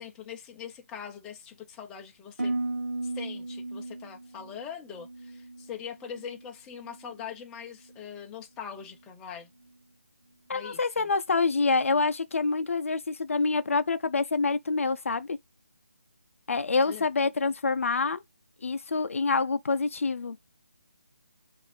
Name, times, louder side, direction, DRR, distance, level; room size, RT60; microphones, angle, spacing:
voice 1, 0.0-2.6 3.0-9.5 10.5-11.1 16.9-17.1, left 8 dB, 10° left, 0.5 m, -42 dB
Harp, 2.4-6.5 6.8-7.3 7.8-8.2, right 2 dB, 80° right, 0.9 m, -36 dB
voice 2, 10.5-15.4 16.5-18.2 18.6-20.4, left 4 dB, 65° left, 0.4 m, -26 dB
4.7 x 2.5 x 3.3 m
figure-of-eight pair, 155°, 8 cm